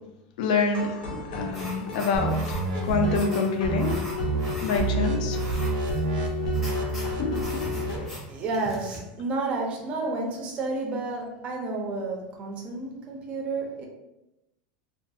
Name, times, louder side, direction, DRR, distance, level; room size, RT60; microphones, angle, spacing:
voice 1, 0.4-4.0 4.6-5.4 7.2-7.7, left 4 dB, 70° left, 4 dB, 0.4 m, -27 dB
sound 1, 0.7-8.1, left 7 dB, 90° left, 0.8 m, -34 dB
sound 2, 1.5-9.0, equal, ahead, 0.7 m, -42 dB
sound 3, 2.1-3.2 3.6-3.9 4.2-4.5 4.8-8.1, right 4 dB, 85° right, 0.4 m, -28 dB
voice 2, 8.3-13.9, right 3 dB, 25° right, 1 dB, 0.4 m, -31 dB
2.3 x 2.3 x 2.7 m, 0.93 s
supercardioid pair, 165°, 5 cm